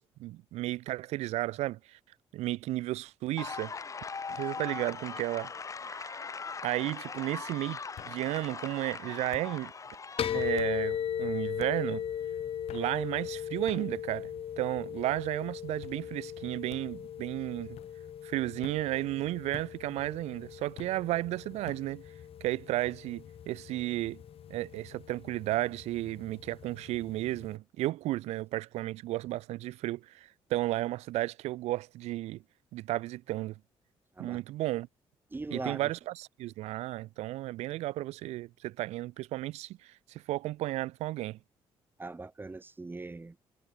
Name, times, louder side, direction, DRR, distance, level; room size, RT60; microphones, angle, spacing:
voice 1, 0.0-2.0 2.3-3.7 4.3-5.5 5.8-6.2 6.6-7.8 8.1-9.7 10.3-12.0 12.7-17.8 18.2-22.0 22.4-24.2 24.5-32.4 32.7-33.5 34.2-34.9 35.5-41.4, right 16 dB, 80° right, 0.5 m, -33 dB
sound 1, 3.4-10.6, left 5 dB, 30° left, 0.5 m, -40 dB
sound 2, 4.5-4.9 5.3-5.8 6.9-7.0 8.0-8.2 9.3-9.5 10.6-10.8 11.6-11.8 12.7-12.9 13.7-13.9 14.6-15.0 15.8-16.0 16.7-16.9 17.7-17.9 18.6-18.8 19.5-19.7 20.8-21.0 21.7-21.9, left 12 dB, 75° left, 5.9 m, -48 dB
sound 3, 10.2-27.5, left 9 dB, 60° left, 1.1 m, -38 dB
voice 2, 35.3-35.8 42.0-43.3, right 3 dB, 20° right, 0.8 m, -40 dB
supercardioid pair, 65°, 11 cm